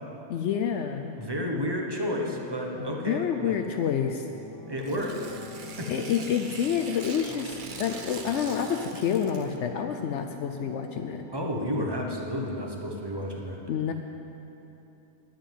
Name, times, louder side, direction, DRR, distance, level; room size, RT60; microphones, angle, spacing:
voice 1, 0.3-1.1 3.0-4.3 5.9-11.2 13.7-13.9, left 8 dB, 70° left, 6 dB, 0.9 m, -28 dB
voice 2, 1.2-3.6 4.7-5.2 5.8-6.1 11.3-13.6, equal, 20° right, 0 dB, 1.2 m, -31 dB
sound 1, 1.7-12.2, left 3 dB, ahead, 1.1 m, -45 dB
Tearing, 4.8-9.6, right 5 dB, 45° right, 0.8 m, -43 dB
9.3 x 8.9 x 9.2 m, 3.0 s
omnidirectional pair, 1.3 m